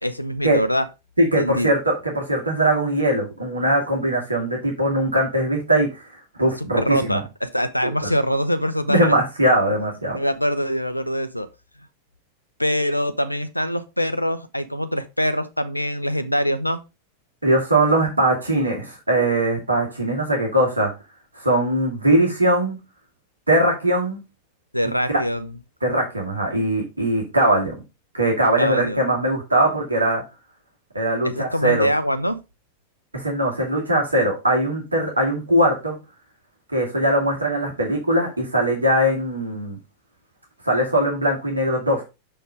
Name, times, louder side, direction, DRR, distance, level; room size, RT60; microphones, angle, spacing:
voice 1, 0.0-0.9 1.4-1.7 6.6-9.2 10.1-11.5 12.6-16.8 24.7-25.5 28.6-29.0 31.2-32.4, equal, 90° left, 0.6 m, -24 dB
voice 2, 1.2-7.2 7.8-7.9 8.9-10.2 17.4-20.9 21.3-22.8 23.5-24.2 25.1-25.2 25.8-27.7 28.1-30.2 30.9-31.9 33.1-36.0 36.7-39.8 40.6-42.0, right 1 dB, 80° right, 2.0 m, -21 dB
6.7 x 4.3 x 4.9 m
figure-of-eight pair, 90°, 0 cm